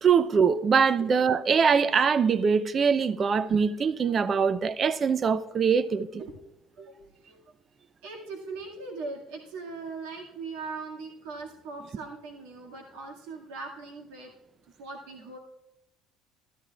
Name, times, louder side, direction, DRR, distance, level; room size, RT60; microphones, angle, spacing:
voice 1, 0.0-6.2, right 6 dB, 35° right, 0.6 m, -23 dB
voice 2, 6.8-7.4 8.0-14.3 14.8-15.4, right 4 dB, 90° right, 2.0 m, -40 dB
13.5 x 13.0 x 2.4 m
supercardioid pair, 100°, 0 cm